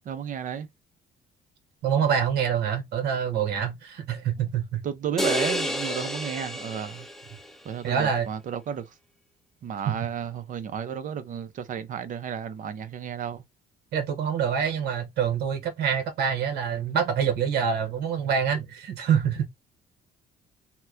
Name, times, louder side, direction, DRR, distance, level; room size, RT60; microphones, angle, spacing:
voice 1, 0.0-0.7 4.8-7.1 7.6-8.9 9.6-13.4, right 8 dB, 50° right, 0.7 m, -32 dB
voice 2, 1.8-4.8 7.8-8.3 9.9-10.0 13.9-19.5, right 7 dB, 75° right, 1.0 m, -26 dB
sound 1, 5.2-7.5, equal, ahead, 0.5 m, -30 dB
2.9 x 2.2 x 3.5 m
cardioid pair, 110°, 17 cm